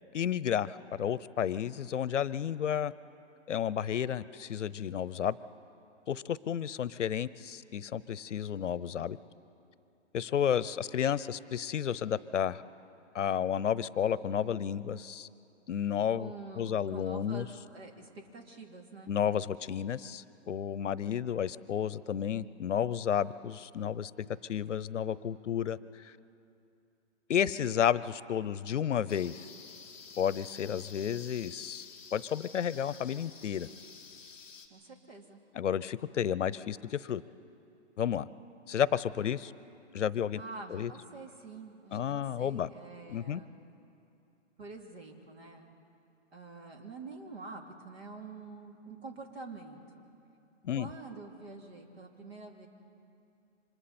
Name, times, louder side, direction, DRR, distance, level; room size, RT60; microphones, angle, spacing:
voice 1, 0.1-2.9 3.5-5.4 6.1-9.2 10.1-12.6 13.1-15.3 15.7-17.5 19.1-26.1 27.3-29.5 30.2-31.9 32.1-33.7 35.5-37.2 38.0-38.3 38.7-39.5 39.9-40.4 40.7-40.9 41.9-42.7 43.1-43.4 50.6-50.9, left 9 dB, 75° left, 18 dB, 0.8 m, -32 dB
voice 2, 16.2-19.1 34.7-35.4 40.3-43.5 44.6-45.7 46.3-50.0 50.7-52.7, right 3 dB, 55° right, 1 dB, 3.1 m, -47 dB
sound 1, 29.1-34.7, left 5 dB, 5° left, 1.4 m, -51 dB
29.5 x 25.5 x 4.3 m, 2.6 s
hypercardioid pair, 180°, 37 cm